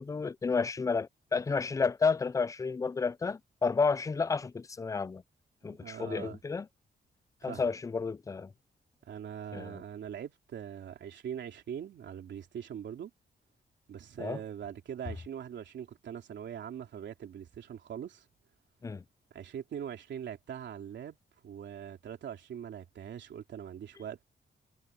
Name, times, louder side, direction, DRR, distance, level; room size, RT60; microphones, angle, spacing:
voice 1, 0.0-5.2 5.6-6.7 7.4-8.5 9.5-9.8 14.2-14.4 18.8-19.0, left 4 dB, 20° left, 0.4 m, -31 dB
voice 2, 5.6-6.4 7.4-7.7 9.0-13.1 13.9-18.2 19.3-21.2 21.4-24.2, right 9 dB, 80° right, 3.1 m, -42 dB
wide cardioid pair, 160°, 18 cm